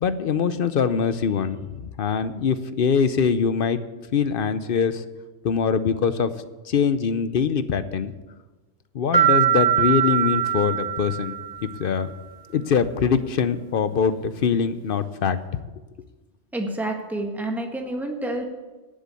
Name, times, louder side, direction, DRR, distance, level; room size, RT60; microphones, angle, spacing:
voice 1, 0.0-3.8 4.1-5.1 5.4-6.3 6.6-8.1 8.9-11.3 11.8-12.1 12.5-15.6, left 6 dB, 55° left, 12 dB, 0.8 m, -23 dB
sound 1, 9.1-11.8, right 10 dB, 35° right, 1.6 m, -22 dB
voice 2, 16.5-18.4, right 1 dB, ahead, 2 dB, 1.5 m, -28 dB
11.0 x 7.5 x 8.5 m, 1.2 s
omnidirectional pair, 1.2 m